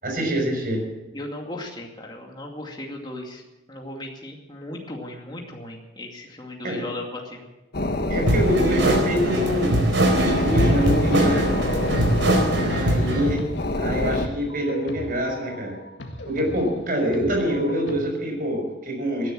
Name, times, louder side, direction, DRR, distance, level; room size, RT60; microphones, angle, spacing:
voice 1, 0.0-0.8 6.6-6.8 8.1-9.8 10.1-11.5 12.6-13.4 13.8-15.7 16.3-19.3, equal, 50° right, 0 dB, 6.3 m, -25 dB
voice 2, 1.1-3.4 3.7-7.5, left 1 dB, 25° left, 0 dB, 2.4 m, -36 dB
sound 1, 7.7-14.3, left 1 dB, 55° left, 1.4 m, -27 dB
sound 2, 8.3-13.3, right 1 dB, 80° right, 4.0 m, -22 dB
sound 3, 10.4-18.0, left 1 dB, 80° left, 1.8 m, -37 dB
18.0 x 10.5 x 7.6 m, 1.0 s
head